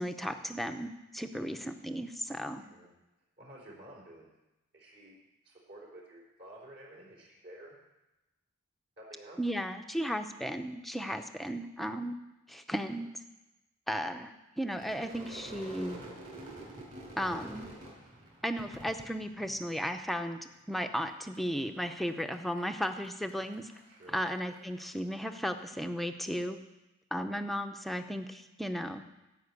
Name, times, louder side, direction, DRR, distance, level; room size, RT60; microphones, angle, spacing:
voice 1, 0.0-2.6 9.4-12.2 12.5-13.1 13.9-16.0 17.2-17.7 18.4-20.4 20.7-23.7 24.1-26.6 27.1-29.0, equal, ahead, 6 dB, 0.6 m, -35 dB
voice 2, 2.6-2.9 3.4-4.3 4.7-5.1 5.4-7.8 9.0-9.4 23.9-24.2 27.3-27.5, right 1 dB, 55° right, -3 dB, 3.9 m, -52 dB
Crowd / Fireworks, 14.7-20.1 20.4-21.1 21.3-24.9, right 1 dB, 35° right, 4.2 m, -48 dB
14.5 x 5.7 x 8.2 m, 0.99 s
head